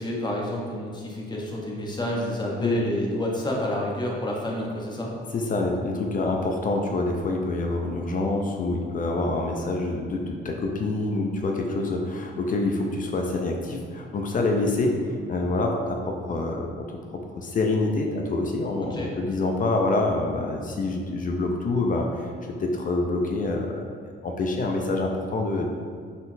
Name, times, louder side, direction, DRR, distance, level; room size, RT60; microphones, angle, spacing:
voice 1, 0.0-5.1 18.8-19.1, left 1 dB, 20° left, -2 dB, 0.9 m, -29 dB
voice 2, 5.3-15.0 15.3-17.0 17.4-22.3 22.6-25.7, left 2 dB, 45° left, 1 dB, 0.5 m, -26 dB
4.1 x 3.9 x 2.6 m, 2.1 s
cardioid pair, 90°, 20 cm